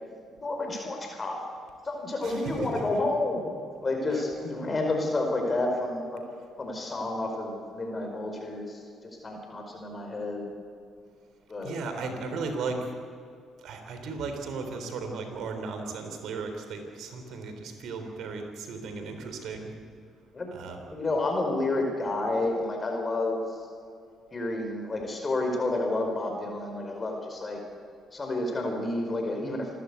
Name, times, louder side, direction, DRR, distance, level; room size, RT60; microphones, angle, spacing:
voice 1, 0.4-1.4 1.8-3.5 3.8-6.2 6.6-8.8 9.2-10.5 11.5-11.7 12.3-12.4 20.3-20.5 20.9-23.4 24.3-27.6 28.1-29.7, left 2 dB, 30° left, 2 dB, 4.9 m, -30 dB
voice 2, 2.2-2.9 4.1-4.2 11.6-12.9 13.6-19.7 20.5-20.9, right 4 dB, 65° right, 5 dB, 3.7 m, -36 dB
27.5 x 13.5 x 8.4 m, 2.4 s
hypercardioid pair, 45°, 0 cm